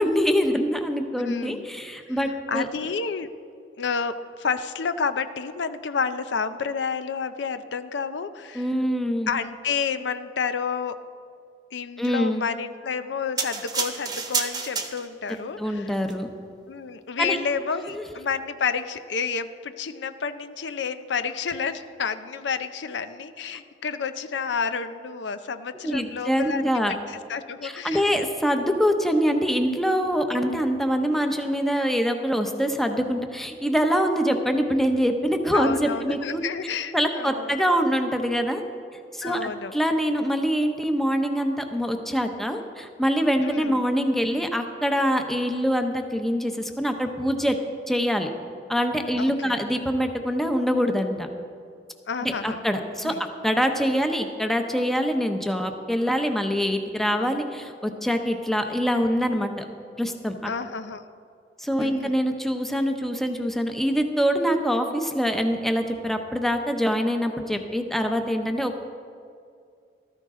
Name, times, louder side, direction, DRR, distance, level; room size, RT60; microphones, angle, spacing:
voice 1, 0.0-2.7 8.5-9.3 12.0-12.4 15.6-16.3 17.2-17.4 18.0-18.1 25.8-26.9 27.6-36.4 36.9-38.6 39.1-47.6 47.9-48.3 48.7-51.3 52.2-59.7 60.0-60.5 61.6-68.8, equal, ahead, 5 dB, 0.8 m, -24 dB
voice 2, 1.2-1.7 2.1-2.2 2.5-3.3 3.8-8.7 9.3-11.0 11.7-15.9 16.7-28.0 30.5-30.7 35.5-37.6 39.2-39.7 43.4-43.8 49.2-49.6 52.1-52.6 53.0-53.2 60.4-61.0 61.8-62.1, left 6 dB, 85° left, 11 dB, 0.5 m, -30 dB
sound 1, 13.4-15.3 16.0-16.1, right 5 dB, 20° right, 1.0 m, -29 dB
14.0 x 13.5 x 3.7 m, 2.3 s
head